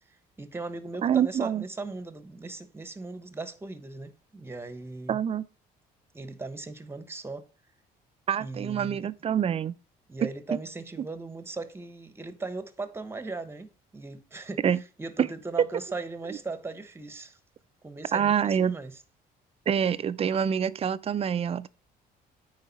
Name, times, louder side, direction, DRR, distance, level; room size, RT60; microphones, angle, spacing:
voice 1, 0.4-5.2 6.1-7.5 8.4-9.1 10.1-14.6 15.0-17.4 17.8-18.9, right 3 dB, 15° right, 1.1 m, -38 dB
voice 2, 1.0-1.6 5.1-5.5 8.3-9.7 10.2-10.3 14.6-14.8 15.2-15.3 18.1-18.8 19.7-21.7, right 8 dB, 35° right, 0.5 m, -26 dB
9.1 x 4.8 x 4.1 m
cardioid pair, 110°, 17 cm